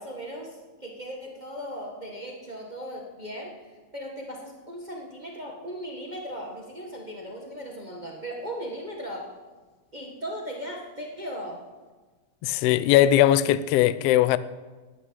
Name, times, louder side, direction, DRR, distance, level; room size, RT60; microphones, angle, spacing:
voice 1, 0.0-3.5 3.9-9.3 9.9-11.6, equal, 35° right, 0.7 m, -37 dB
voice 2, 12.4-14.4, left 13 dB, 85° left, 1.4 m, -19 dB
10.0 x 9.8 x 8.7 m
omnidirectional pair, 3.3 m